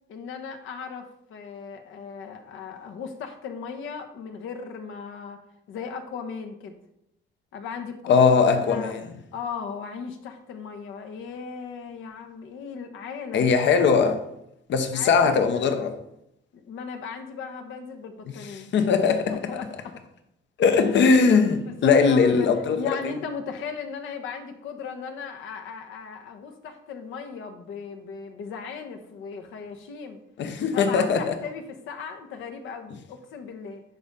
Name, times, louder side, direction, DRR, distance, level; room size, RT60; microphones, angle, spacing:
voice 1, 0.1-5.4 5.7-6.8 7.5-8.3 8.6-8.9 9.3-13.5 14.9-15.7 16.5-18.7 19.3-20.0 21.7-30.2 30.6-33.8, left 6 dB, 80° left, 1.1 m, -37 dB
voice 2, 8.1-9.0 13.3-14.2 14.7-16.0 18.7-19.3 20.6-22.8 30.4-31.3, left 5 dB, 65° left, 0.9 m, -20 dB
10.5 x 4.1 x 3.6 m
cardioid pair, 90°, 20 cm